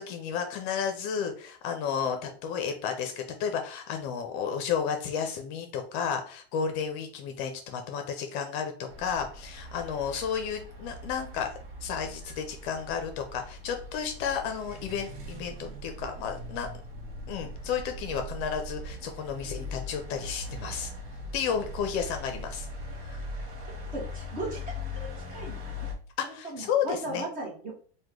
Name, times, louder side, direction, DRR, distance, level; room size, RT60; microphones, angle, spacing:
voice 1, 0.0-11.5 11.8-16.7 17.3-20.9 21.3-22.7 23.1-23.2 26.2-27.2, left 7 dB, 45° left, 5 dB, 0.5 m, -32 dB
sound 1, 8.9-26.0, left 1 dB, 60° right, 0.9 m, -40 dB
voice 2, 23.9-24.6 24.9-25.9 26.2-27.7, right 2 dB, 25° right, 0 dB, 1.1 m, -37 dB
3.0 x 2.2 x 3.6 m, 0.43 s
supercardioid pair, 145°, 31 cm